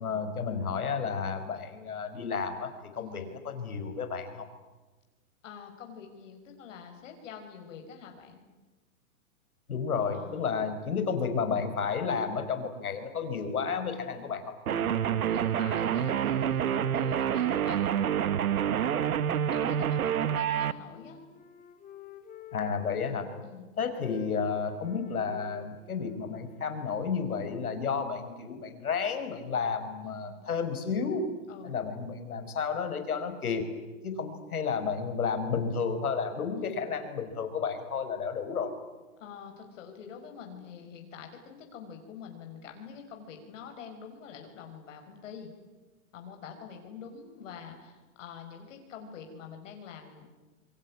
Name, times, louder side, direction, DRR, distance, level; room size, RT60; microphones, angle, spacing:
voice 1, 0.0-4.5 9.7-14.5 22.5-23.3 23.8-31.3 31.6-33.6 34.0-38.7, left 5 dB, 85° left, 8 dB, 5.3 m, -32 dB
voice 2, 3.0-3.3 5.4-8.4 10.1-10.5 14.7-18.0 18.7-21.2 23.0-23.7 30.0-30.4 31.5-31.8 36.6-36.9 39.2-45.5 46.1-50.3, left 6 dB, 60° left, 4 dB, 5.3 m, -46 dB
sound 1, 14.7-20.7, right 9 dB, 80° right, 1.4 m, -27 dB
Wind instrument woodwind instrument, 20.5-23.5 23.8-27.7, left 7 dB, 20° left, 3.4 m, -51 dB
26.5 x 23.0 x 9.6 m, 1.2 s
hypercardioid pair, 145°, 43 cm